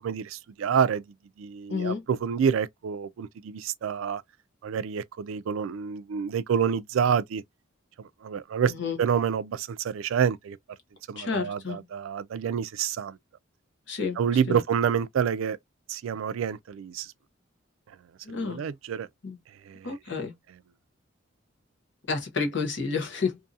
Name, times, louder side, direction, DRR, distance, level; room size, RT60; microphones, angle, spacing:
voice 1, 0.0-1.0 1.4-4.2 4.6-7.4 8.2-8.7 9.0-10.6 11.1-13.2 14.2-15.6 15.9-17.1 18.3-19.1 19.7-19.9, right 7 dB, 85° right, 0.3 m, -28 dB
voice 2, 1.7-2.0 8.7-9.0 11.1-11.9 13.9-14.2 14.5-14.6 18.2-18.7 19.2-19.4 19.8-20.3 22.1-23.4, left 5 dB, 60° left, 0.9 m, -30 dB
2.7 x 2.6 x 2.3 m
head